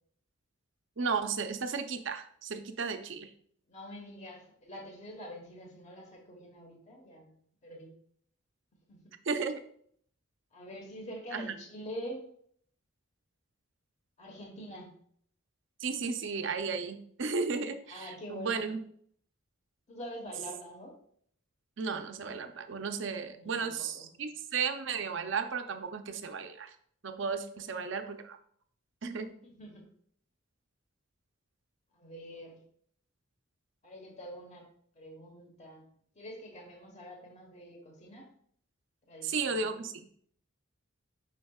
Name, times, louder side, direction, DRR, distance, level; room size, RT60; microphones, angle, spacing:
voice 1, 1.0-3.3 9.2-9.6 11.3-11.5 15.8-18.8 21.8-26.7 27.0-28.4 29.0-29.3 39.2-40.1, right 5 dB, 60° right, 7 dB, 0.6 m, -34 dB
voice 2, 3.7-7.9 8.9-9.0 10.5-12.3 14.2-14.9 17.9-18.7 19.9-21.0 23.3-24.2 29.4-29.9 31.9-32.6 33.8-34.6 34.9-35.9 36.1-38.3 39.1-39.8, equal, 30° left, 1 dB, 1.2 m, -46 dB
7.2 x 5.8 x 2.3 m, 0.62 s
head